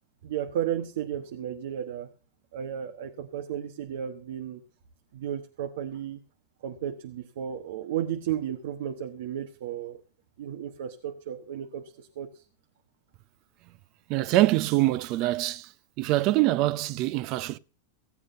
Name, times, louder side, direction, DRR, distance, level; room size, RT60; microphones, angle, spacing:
voice 1, 0.2-2.1 2.5-4.6 5.1-6.2 6.6-10.0 10.4-12.4, right 10 dB, 75° right, 1.2 m, -34 dB
voice 2, 14.1-15.7 16.0-17.6, right 17 dB, 50° right, 0.6 m, -24 dB
16.0 x 8.6 x 5.4 m
supercardioid pair, 125°, 0 cm